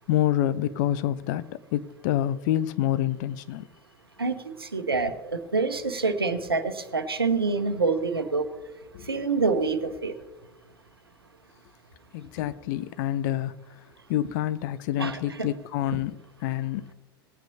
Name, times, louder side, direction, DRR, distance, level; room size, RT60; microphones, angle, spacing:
voice 1, 0.1-3.7 8.9-9.1 12.1-13.5 14.1-16.2 16.4-16.9, left 12 dB, 55° left, 0.6 m, -27 dB
voice 2, 4.2-8.5 9.1-10.1 15.0-15.5, right 4 dB, 85° right, 0.9 m, -26 dB
18.5 x 8.8 x 2.8 m
figure-of-eight pair, 80°, 12 cm